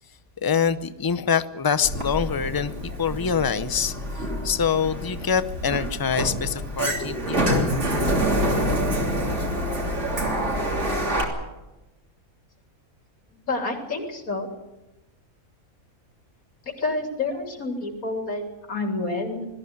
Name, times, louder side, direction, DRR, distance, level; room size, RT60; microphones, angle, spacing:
voice 1, 0.4-7.7, left 7 dB, 30° left, 13 dB, 0.4 m, -25 dB
Sliding door, 1.8-11.2, right 1 dB, 50° right, 3.5 m, -26 dB
voice 2, 13.5-14.5 16.7-19.5, left 3 dB, 75° left, 3 dB, 3.6 m, -29 dB
20.5 x 14.0 x 9.5 m, 1.0 s
omnidirectional pair, 1.5 m